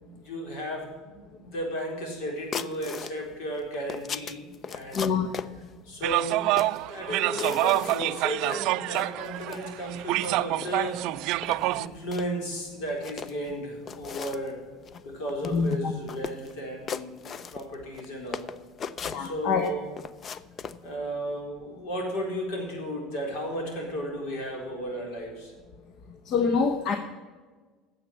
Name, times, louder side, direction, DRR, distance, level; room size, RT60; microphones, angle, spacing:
voice 1, 0.0-5.1 5.8-11.0 11.7-14.6 15.0-18.5 19.2-19.9 20.8-25.5, equal, 70° left, 1 dB, 4.0 m, -34 dB
sound 1, 2.5-3.1 3.6-5.5 6.2-6.8 7.3-8.2 8.5-8.6 8.9-9.6 10.1-10.3 10.6-11.0 11.4-12.3 12.9-13.5 13.9-14.5 14.8-15.0 15.3-15.8 16.1-16.5 16.9-18.1 18.3-19.7 20.0-20.8, left 6 dB, 35° left, 0.5 m, -37 dB
voice 2, 4.9-5.3 15.5-15.9 19.1-19.7 26.3-27.0, left 5 dB, 50° left, 7 dB, 0.9 m, -25 dB
sound 2, 6.0-11.9, right 18 dB, 65° right, 0.4 m, -27 dB
9.6 x 7.4 x 8.8 m, 1.4 s
supercardioid pair, 125°, 0 cm